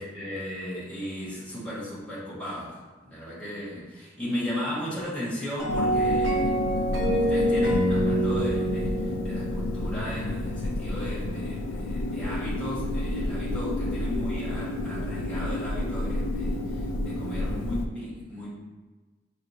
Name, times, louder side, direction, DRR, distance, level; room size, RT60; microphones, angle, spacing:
voice 1, 0.0-18.5, equal, 5° left, -10 dB, 1.4 m, -36 dB
sound 1, 5.6-10.8, right 1 dB, 70° right, 0.9 m, -26 dB
sound 2, 5.7-17.9, left 2 dB, 75° left, 0.3 m, -30 dB
6.1 x 2.5 x 2.7 m, 1.3 s
head